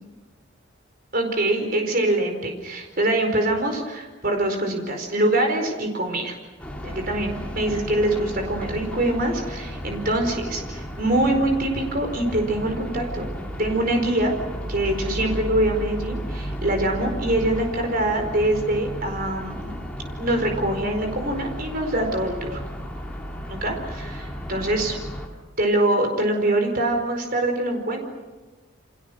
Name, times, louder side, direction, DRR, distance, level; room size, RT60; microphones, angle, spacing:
voice 1, 1.1-6.3 6.8-13.3 13.6-14.3 14.7-19.8 20.2-22.6 23.5-25.0 25.6-28.0, right 1 dB, 45° right, 4 dB, 4.7 m, -24 dB
sound 1, 6.6-25.3, equal, 5° left, 3.1 m, -33 dB
29.5 x 25.5 x 6.4 m, 1.2 s
head